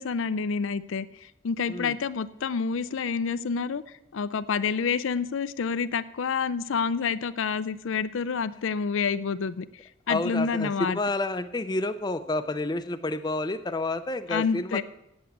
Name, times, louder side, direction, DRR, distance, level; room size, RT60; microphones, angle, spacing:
voice 1, 0.0-3.8 4.1-9.6 10.1-11.0 14.3-14.8, left 5 dB, 75° left, 14 dB, 0.5 m, -28 dB
voice 2, 10.1-14.8, left 2 dB, 20° left, 10 dB, 0.4 m, -29 dB
8.3 x 7.9 x 8.4 m, 0.84 s
head